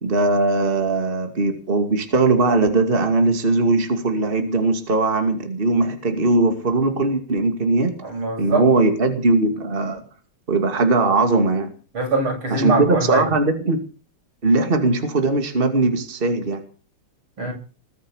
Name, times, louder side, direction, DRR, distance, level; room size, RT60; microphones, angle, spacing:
voice 1, 0.0-7.9 8.4-10.0 10.5-11.7 12.5-13.8 14.4-16.6, right 3 dB, 25° right, 6 dB, 2.6 m, -19 dB
voice 2, 8.0-8.6 11.9-13.3 17.4-17.5, right 2 dB, 85° right, 2 dB, 8.6 m, -23 dB
21.5 x 8.8 x 7.2 m, 0.38 s
omnidirectional pair, 2.3 m